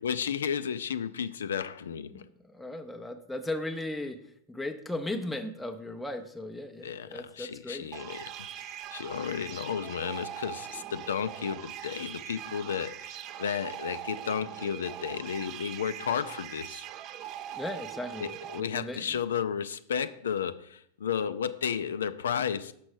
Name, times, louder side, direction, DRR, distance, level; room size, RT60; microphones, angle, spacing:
voice 1, 0.0-2.2 6.8-8.3 8.6-16.8 18.2-22.7, left 7 dB, 65° left, 13 dB, 0.4 m, -33 dB
voice 2, 2.1-4.2 4.5-7.9 17.5-18.3 18.6-19.2, left 1 dB, 5° left, 3 dB, 0.6 m, -37 dB
sound 1, 7.9-18.6, right 11 dB, 40° right, 0.3 m, -41 dB
6.2 x 6.0 x 4.7 m, 0.69 s
figure-of-eight pair, 90°, 0 cm